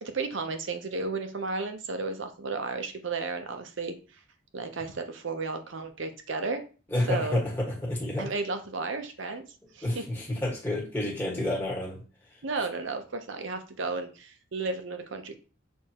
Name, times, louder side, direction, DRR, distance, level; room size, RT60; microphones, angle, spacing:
voice 1, 0.0-3.9 4.5-6.6 7.0-7.4 8.2-9.4 9.7-10.1 12.4-15.4, right 3 dB, 65° right, 7 dB, 0.7 m, -33 dB
voice 2, 6.9-8.3 9.8-12.0, left 1 dB, 10° left, -4 dB, 1.5 m, -29 dB
6.5 x 2.6 x 2.9 m, 0.36 s
head